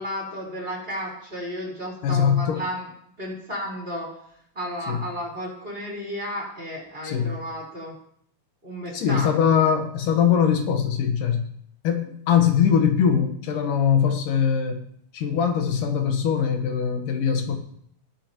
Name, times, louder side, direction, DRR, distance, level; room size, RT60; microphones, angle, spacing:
voice 1, 0.0-2.9 3.2-4.1 4.5-8.0 8.6-9.7, equal, 15° right, -3 dB, 4.2 m, -33 dB
voice 2, 2.0-2.6 4.9-5.0 7.0-7.3 8.9-11.4 11.8-14.8 15.1-17.6, left 7 dB, 75° left, 5 dB, 2.8 m, -21 dB
20.0 x 11.0 x 3.0 m, 0.68 s
omnidirectional pair, 3.8 m